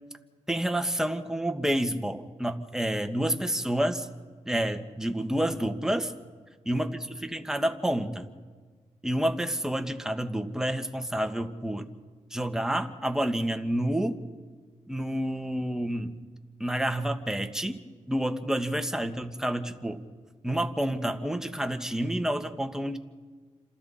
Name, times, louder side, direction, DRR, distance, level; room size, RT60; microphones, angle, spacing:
voice 1, 0.5-4.1 4.4-6.1 6.6-8.3 9.0-11.9 12.3-14.2 14.9-16.2 16.6-20.0 20.4-23.0, right 1 dB, 5° right, 6 dB, 1.8 m, -29 dB
28.0 x 26.5 x 4.3 m, 1.5 s
cardioid pair, 50°, 13 cm